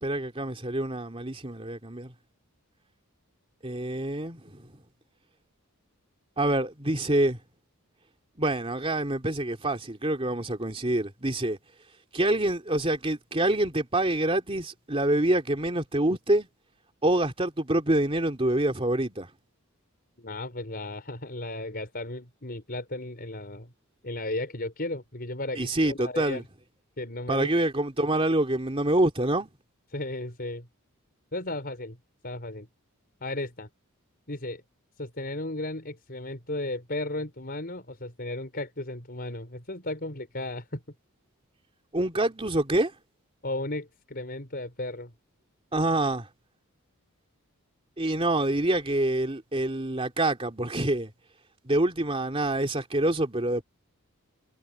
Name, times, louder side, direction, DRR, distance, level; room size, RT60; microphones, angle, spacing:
voice 1, 0.0-2.1 3.6-4.7 6.4-7.4 8.4-11.6 12.1-16.5 17.0-19.3 25.6-26.4 27.3-29.5 41.9-42.9 45.7-46.3 48.0-51.1 51.6-53.6, right 1 dB, 25° right, 2.9 m, -26 dB
voice 2, 20.2-23.7 24.0-26.4 27.0-27.5 29.9-30.7 31.3-32.0 32.2-32.7 33.2-33.7 34.3-34.6 35.0-40.8 43.4-45.1, left 2 dB, 45° left, 5.1 m, -35 dB
head